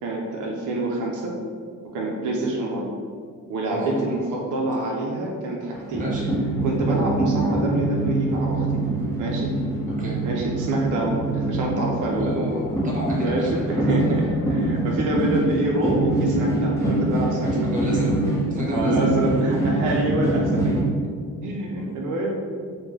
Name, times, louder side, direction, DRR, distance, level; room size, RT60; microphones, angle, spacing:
voice 1, 0.0-1.3 1.9-2.9 3.5-6.1 6.6-8.8 9.2-9.5 10.2-12.3 13.2-18.1 18.7-20.6 21.4-22.4, right 2 dB, 85° right, -1 dB, 0.5 m, -26 dB
voice 2, 3.7-4.5 6.0-6.2 10.0-10.2 12.2-13.9 14.6-14.8 17.6-19.6 21.7-22.0, equal, 25° right, -4 dB, 1.1 m, -32 dB
sound 1, 5.7-20.8, right 2 dB, 10° left, 1.0 m, -24 dB
3.5 x 2.2 x 3.1 m, 2.1 s
cardioid pair, 90°, 30 cm